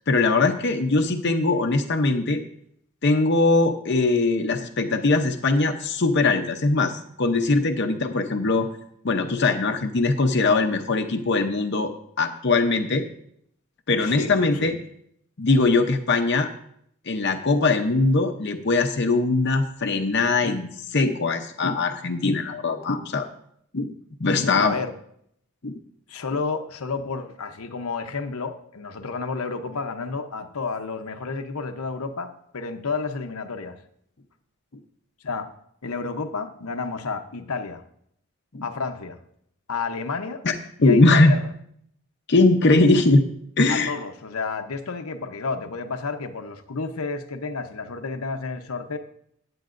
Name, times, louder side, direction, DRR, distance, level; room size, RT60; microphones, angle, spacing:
voice 1, 0.1-2.4 3.0-8.7 9.0-11.9 12.2-13.0 13.9-14.8 15.4-16.5 17.1-23.3 23.7-23.9 24.2-24.7 25.6-25.7 38.5-38.6 40.4-40.5 40.8-41.3 42.3-43.2 43.6-43.9, left 3 dB, 50° left, 4 dB, 0.7 m, -21 dB
voice 2, 14.0-14.8 24.5-24.9 26.1-33.7 35.2-35.5 35.8-37.8 38.6-39.2 39.7-40.4 40.8-41.4 43.7-49.0, left 4 dB, 80° left, 6 dB, 0.8 m, -31 dB
15.5 x 9.8 x 2.5 m, 0.70 s
head